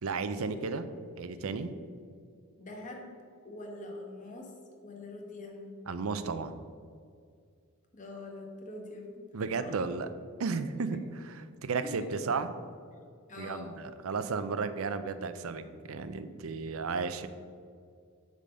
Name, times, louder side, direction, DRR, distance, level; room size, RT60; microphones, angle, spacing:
voice 1, 0.0-0.8 1.2-1.7 5.9-6.6 9.3-10.1 10.4-12.5 13.4-17.3, right 4 dB, 65° right, 11 dB, 0.5 m, -34 dB
voice 2, 2.6-3.1 3.4-4.5 4.8-5.7 7.9-9.3 9.6-9.7 11.8-12.1 13.3-13.7, left 2 dB, 35° left, 1 dB, 1.2 m, -44 dB
8.5 x 3.8 x 6.7 m, 2.2 s
head